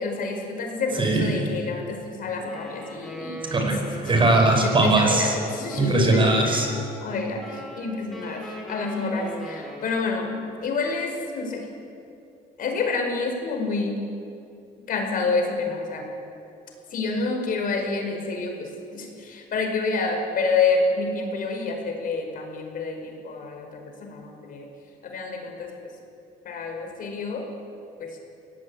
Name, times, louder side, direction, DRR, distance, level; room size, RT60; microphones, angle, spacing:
voice 1, 0.0-3.5 4.0-4.1 4.6-6.7 7.0-11.7 12.6-14.0 14.9-16.0 16.9-24.7 25.0-25.7 26.4-27.5 28.0-28.2, left 3 dB, 55° left, 2 dB, 5.2 m, -28 dB
voice 2, 1.0-1.4 3.5-5.3 5.7-6.7, right 2 dB, 30° right, 3 dB, 5.0 m, -20 dB
Wind instrument woodwind instrument, 2.4-10.3, equal, ahead, 5.9 m, -40 dB
24.5 x 18.0 x 8.6 m, 2.7 s
cardioid pair, 110°, 17 cm